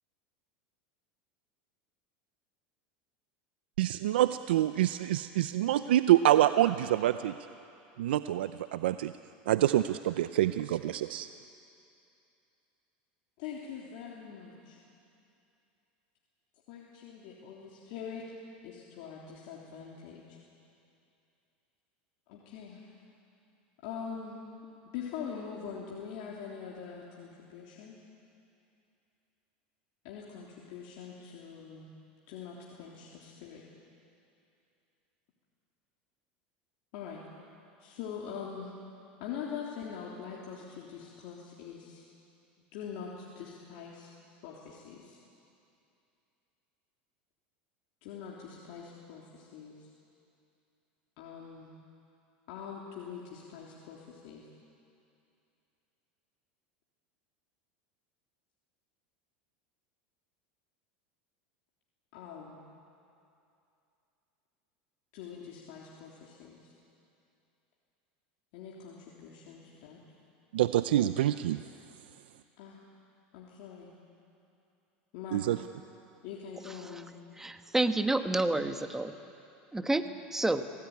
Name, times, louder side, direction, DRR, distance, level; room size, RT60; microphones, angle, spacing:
voice 1, 3.8-7.3 8.0-9.1 9.5-11.3 70.5-71.6 75.3-75.6, right 13 dB, 85° right, 12 dB, 0.6 m, -26 dB
voice 2, 13.4-14.8 16.7-18.2 18.6-20.4 22.3-22.8 23.8-24.4 24.9-28.0 30.0-31.9 32.3-33.6 36.9-37.2 37.8-38.7 39.2-42.0 42.7-44.1 44.4-45.2 48.0-49.9 51.2-51.7 52.5-54.4 62.1-62.6 65.1-66.7 68.5-70.0 72.6-72.8 73.3-73.9 75.1-75.5 76.2-77.2, left 7 dB, 65° left, -4 dB, 3.3 m, -43 dB
voice 3, 77.4-79.1 79.7-80.7, right 2 dB, 10° right, 8 dB, 1.3 m, -29 dB
26.0 x 17.5 x 9.5 m, 2.7 s
supercardioid pair, 115°, 5 cm